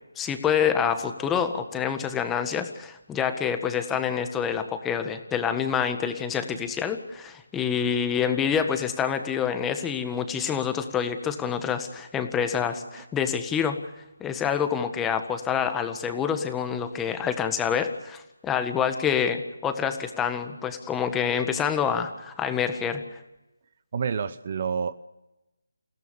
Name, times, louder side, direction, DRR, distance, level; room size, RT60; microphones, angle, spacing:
voice 1, 0.2-13.8 14.2-23.2, left 7 dB, 10° left, 1.6 m, -27 dB
voice 2, 23.9-25.0, right 6 dB, 40° right, 0.8 m, -28 dB
29.0 x 17.0 x 7.0 m
figure-of-eight pair, 155°, 0 cm